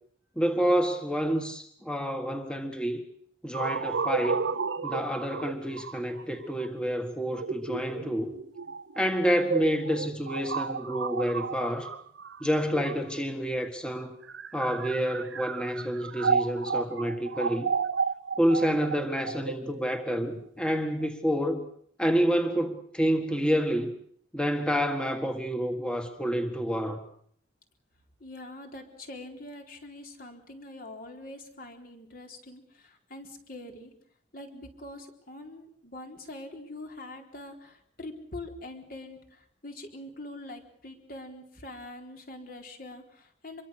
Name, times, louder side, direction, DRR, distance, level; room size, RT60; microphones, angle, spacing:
voice 1, 0.3-3.0 3.4-4.4 4.8-8.3 8.9-11.9 12.4-14.1 14.5-17.7 18.4-21.7 22.0-23.9 24.3-27.0, equal, 5° left, 6 dB, 1.7 m, -28 dB
sound 1, 3.5-13.4 14.1-21.1, right 5 dB, 90° right, 0.9 m, -33 dB
voice 2, 28.2-33.9 34.3-43.6, left 2 dB, 50° left, 3 dB, 4.1 m, -44 dB
26.0 x 23.0 x 6.6 m, 0.64 s
head